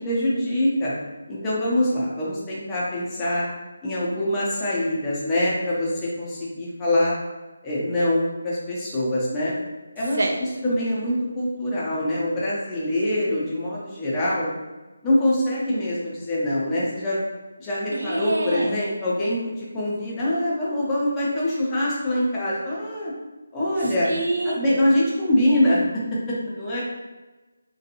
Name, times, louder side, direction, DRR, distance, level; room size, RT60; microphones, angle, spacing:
voice 1, 0.0-0.9 1.3-3.4 3.8-7.2 7.6-9.5 9.9-10.3 10.6-14.5 15.0-17.2 17.6-23.1 23.5-24.1 24.4-25.8 26.3-26.8, left 1 dB, 15° left, -7 dB, 0.6 m, -24 dB
voice 2, 17.9-18.8 23.8-24.8, right 2 dB, 55° right, 2 dB, 0.3 m, -27 dB
2.5 x 2.3 x 2.8 m, 1.1 s
figure-of-eight pair, 155°, 0 cm